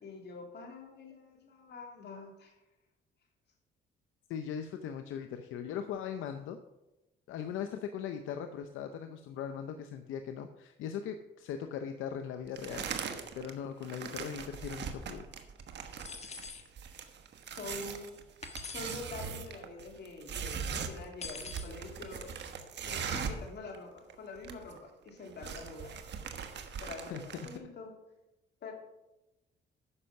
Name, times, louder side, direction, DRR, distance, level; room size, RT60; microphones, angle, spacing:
voice 1, 0.0-2.5 17.6-18.1 18.7-22.3 22.8-24.8 25.0-25.9 26.8-27.9 28.6-28.7, left 3 dB, 55° left, 1 dB, 3.0 m, -45 dB
voice 2, 4.3-6.6 7.3-12.9 13.3-15.2 27.1-27.5, left 8 dB, 85° left, 7 dB, 0.7 m, -39 dB
sound 1, 12.6-13.5 13.8-23.5 23.7-23.8 24.1-24.8 25.1-27.6, right 6 dB, 60° right, 1.2 m, -40 dB
sound 2, 16.0-16.7 18.4-19.0 21.2-21.7, left 5 dB, 35° left, 1.4 m, -44 dB
9.9 x 6.5 x 5.8 m, 0.96 s
cardioid pair, 90°, 20 cm